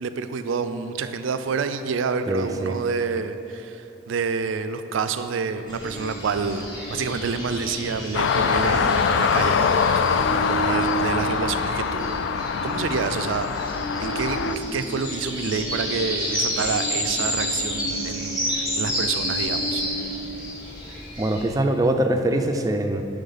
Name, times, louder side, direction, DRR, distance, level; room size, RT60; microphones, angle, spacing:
voice 1, 0.0-12.2 12.6-19.8, right 5 dB, 85° right, 10 dB, 0.4 m, -28 dB
voice 2, 2.3-2.7 21.2-23.0, right 1 dB, 20° right, 6 dB, 0.3 m, -23 dB
sound 1, 5.7-21.5, left 1 dB, 20° left, 1.6 m, -31 dB
sound 2, 5.8-20.2, right 3 dB, 85° left, 0.9 m, -35 dB
sound 3, 8.1-14.6, left 6 dB, 70° left, 0.3 m, -23 dB
9.1 x 3.6 x 5.6 m, 2.9 s
head